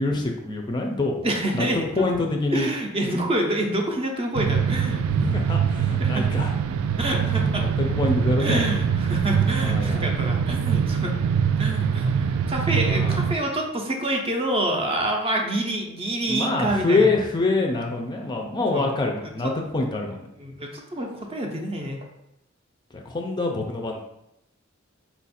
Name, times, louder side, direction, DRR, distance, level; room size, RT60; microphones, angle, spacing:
voice 1, 0.0-1.3 1.5-2.7 5.1-6.5 7.1-8.7 9.5-10.1 12.9-13.2 16.3-20.2 22.9-24.0, left 2 dB, 20° left, 2 dB, 0.4 m, -25 dB
voice 2, 1.2-2.0 2.5-5.0 6.0-6.3 7.0-7.7 8.4-11.1 11.6-17.1 18.7-18.9 19.2-19.5 20.4-22.0, right 1 dB, 30° right, 1 dB, 0.6 m, -27 dB
sound 1, 4.4-13.4, right 7 dB, 80° right, 0.3 m, -23 dB
4.4 x 2.4 x 4.1 m, 0.82 s
head